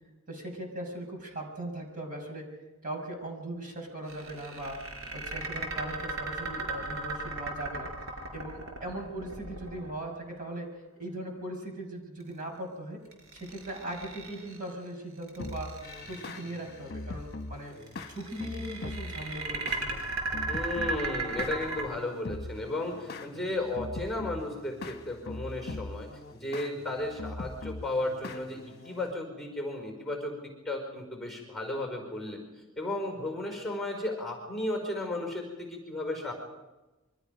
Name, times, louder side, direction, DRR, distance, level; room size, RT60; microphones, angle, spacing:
voice 1, 0.3-2.5 2.8-4.8 5.1-7.9 8.3-10.7 11.0-13.0 13.3-15.7 16.1-17.7 18.1-20.0, right 1 dB, 40° right, 2 dB, 5.8 m, -39 dB
sound 1, 4.1-10.3 13.1-14.7 15.2-16.6 17.8-21.8, right 3 dB, 70° right, 4.7 m, -36 dB
sound 2, 15.4-29.1, left 2 dB, 45° left, 1.2 m, -42 dB
voice 2, 20.5-26.1 26.3-32.4 32.8-36.3, left 2 dB, ahead, 2 dB, 4.8 m, -34 dB
28.0 x 24.5 x 5.2 m, 1.1 s
head